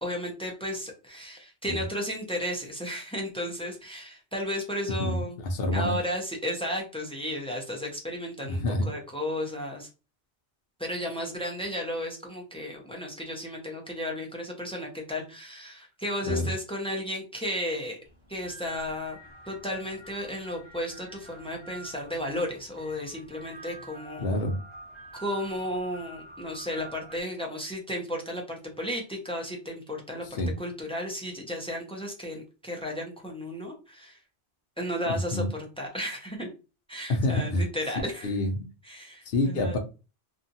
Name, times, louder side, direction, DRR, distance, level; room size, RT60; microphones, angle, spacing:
voice 1, 0.0-5.4 5.7-9.9 10.8-18.0 18.3-19.2 19.5-24.3 25.1-30.2 30.6-34.2 34.8-36.5 36.9-38.3 38.9-39.8, equal, 10° left, 0.4 m, -34 dB
voice 2, 5.0-6.0 8.4-8.9 16.3-16.5 24.2-24.6 30.3-30.5 35.1-35.5 37.1-37.6 38.2-38.7 39.3-39.8, left 1 dB, 60° left, 0.8 m, -27 dB
sound 1, 18.0-27.2, right 1 dB, 25° right, 1.1 m, -48 dB
2.7 x 2.4 x 2.6 m
omnidirectional pair, 1.2 m